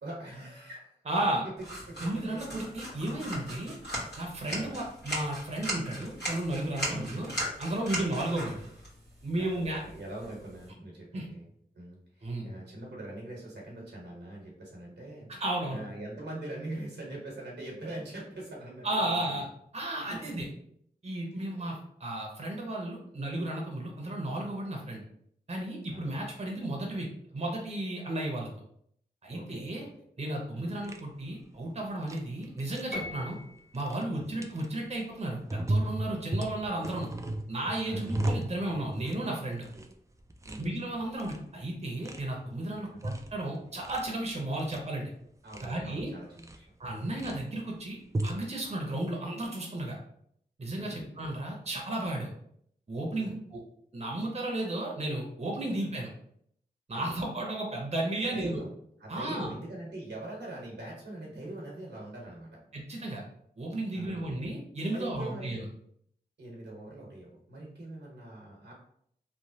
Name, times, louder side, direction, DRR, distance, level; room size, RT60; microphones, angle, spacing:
voice 1, 0.0-1.0 1.9-2.0 2.3-2.6 4.5-4.8 6.8-7.1 9.4-11.5 11.7-15.3 15.7-19.5 20.1-20.5 21.3-21.5 24.8-24.9 25.9-26.2 29.3-29.6 30.5-30.7 34.2-34.5 37.8-38.1 39.7-39.8 40.4-40.7 42.9-43.1 45.4-47.1 50.7-51.1 53.1-53.4 55.7-56.0 56.9-57.0 58.3-58.7 59.0-62.6 63.9-64.3 64.9-65.6 66.4-68.7, right 1 dB, 85° right, -3 dB, 1.1 m, -43 dB
voice 2, 1.1-1.4 2.0-3.8 4.2-7.3 7.6-8.6 9.2-9.8 11.1-11.3 12.2-12.5 15.3-15.8 18.8-19.4 19.7-20.5 21.0-25.0 25.5-27.1 27.3-28.5 29.2-29.9 30.2-33.4 33.7-37.1 37.5-39.7 40.6-45.1 45.6-46.1 46.8-50.0 50.6-52.3 52.9-53.6 53.9-56.1 56.9-58.6 59.1-59.5 62.7-63.2 63.6-65.6, right 1 dB, 40° right, -1 dB, 0.7 m, -33 dB
sound 1, 1.6-10.7, right 1 dB, 75° left, 1.2 m, -39 dB
sound 2, 30.8-31.0 32.0-32.2 32.4-32.8 33.7-34.0 34.4-34.6 35.5-39.2 39.5-39.9 40.2-40.6 41.0-41.5 42.0-42.2 42.8-43.3 43.6-44.1 44.4-44.8 45.3-45.7 46.4-46.5 47.0-47.3 48.0-48.4, right 1 dB, 15° right, 0.4 m, -34 dB
Piano, 32.9-33.8, left 2 dB, 55° left, 1.3 m, -39 dB
3.1 x 2.0 x 2.7 m, 0.68 s
cardioid pair, 45°, 18 cm